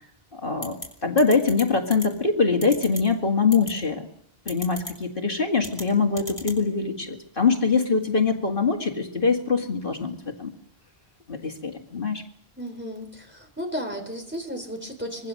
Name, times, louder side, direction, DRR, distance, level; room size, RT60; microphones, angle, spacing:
voice 1, 0.3-0.8 1.0-4.1 4.5-10.5 11.3-12.2, left 4 dB, 55° left, 2 dB, 2.2 m, -23 dB
sound 1, 0.6-0.9 1.2-1.6 1.9-2.1 2.6-3.0 3.5-3.7 4.5-4.9 5.6-5.8 6.2-6.6, left 1 dB, 15° left, 5.8 m, -34 dB
voice 2, 12.6-15.3, equal, 10° right, 3 dB, 3.8 m, -34 dB
25.5 x 22.0 x 6.5 m, 0.74 s
omnidirectional pair, 1.1 m